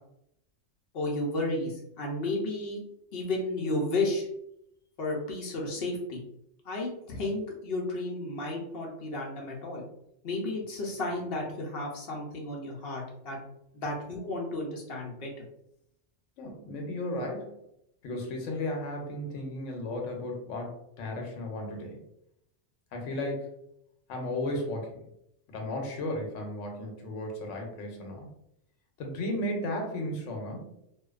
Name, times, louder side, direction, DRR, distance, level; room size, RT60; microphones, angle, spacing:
voice 1, 0.9-2.8 3.1-4.3 5.0-6.2 6.7-9.8 10.2-13.4 13.7-15.5, left 2 dB, 60° left, -1 dB, 0.7 m, -33 dB
voice 2, 16.4-17.6 18.0-22.0 22.9-23.5 24.1-25.0 25.5-28.3 29.0-30.7, left 1 dB, 80° left, 2 dB, 1.0 m, -34 dB
2.6 x 2.1 x 2.3 m, 0.79 s
omnidirectional pair, 1.3 m